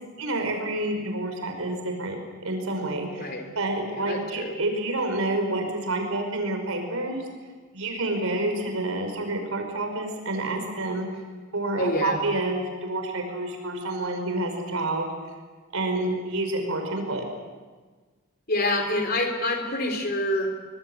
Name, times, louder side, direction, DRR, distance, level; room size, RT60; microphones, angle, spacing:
voice 1, 0.2-7.3 7.7-11.1 11.5-15.1 15.7-17.2, right 2 dB, 85° right, 4 dB, 5.4 m, -28 dB
voice 2, 3.9-4.5 11.8-12.2 18.5-20.5, left 1 dB, 45° left, 5 dB, 3.7 m, -26 dB
24.5 x 21.5 x 8.1 m, 1.4 s
head